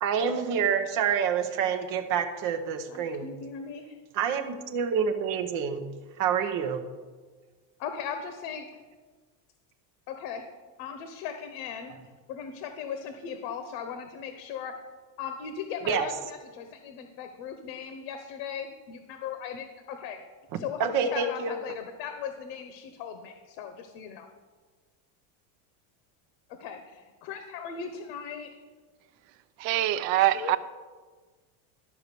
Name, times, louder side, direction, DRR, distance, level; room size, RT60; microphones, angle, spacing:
voice 1, 0.0-3.3 4.1-5.9 6.2-6.8 15.9-16.1 20.8-21.6, right 7 dB, 40° right, 6 dB, 0.9 m, -27 dB
voice 2, 2.9-4.0 7.8-8.7 10.1-10.5 10.8-11.9 12.3-14.7 15.2-20.2 20.5-24.3 26.5-28.5 30.1-30.5, left 7 dB, 85° left, 7 dB, 1.1 m, -38 dB
voice 3, 29.6-30.6, right 14 dB, 70° right, 14 dB, 0.7 m, -24 dB
12.0 x 4.8 x 6.8 m, 1.4 s
cardioid pair, 175°, 50 cm